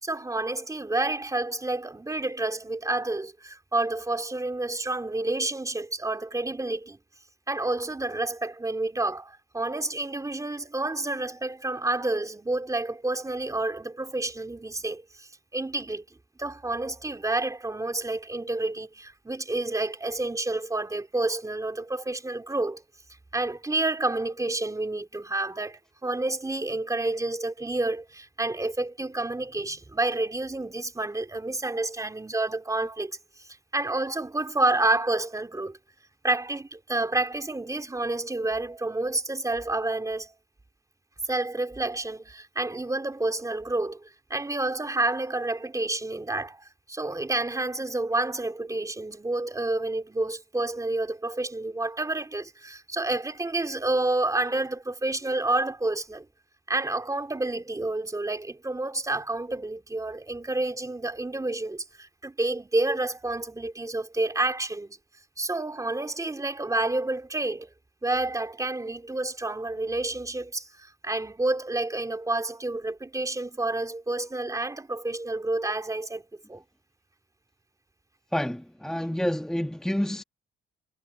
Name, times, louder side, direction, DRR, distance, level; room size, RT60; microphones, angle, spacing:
voice 1, 0.0-7.0 7.5-16.0 16.4-22.8 23.3-35.8 36.2-40.3 41.3-56.3 56.7-65.0 65.4-67.7 68.0-76.2 76.5-76.6, right 2 dB, 15° right, 3.2 m, -29 dB
voice 2, 78.3-80.2, equal, 5° left, 1.3 m, -28 dB
cardioid pair, 90°, 20 cm